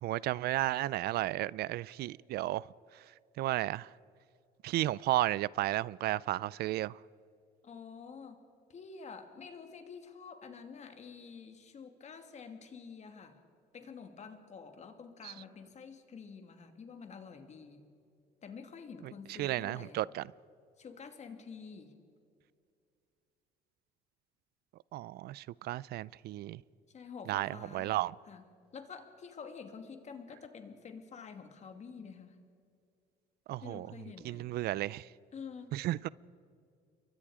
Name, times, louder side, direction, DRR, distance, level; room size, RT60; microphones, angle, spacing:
voice 1, 0.0-2.7 2.9-3.0 3.4-3.9 4.6-7.0 15.2-15.3 19.0-20.3 24.9-26.6 27.3-28.1 33.5-33.9 34.2-35.1 35.7-36.1, right 16 dB, 70° right, 0.5 m, -33 dB
voice 2, 7.6-8.4 8.7-13.4 13.7-17.8 18.4-20.0 20.8-21.9 26.9-28.0 28.3-28.4 28.7-32.4 33.6-34.5 35.3-35.7, left 5 dB, 45° left, 2.6 m, -48 dB
28.5 x 23.0 x 4.9 m
cardioid pair, 110°, 17 cm